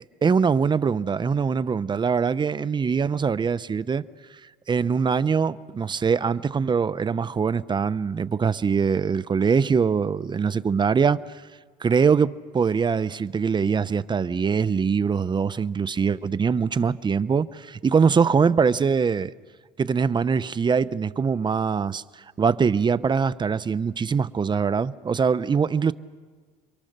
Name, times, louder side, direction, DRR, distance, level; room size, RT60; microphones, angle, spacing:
voice 1, 0.2-4.0 4.7-11.2 11.8-19.3 19.8-22.0 22.4-25.9, right 6 dB, 25° right, 0.7 m, -23 dB
28.0 x 23.5 x 6.7 m
cardioid pair, 110°, 17 cm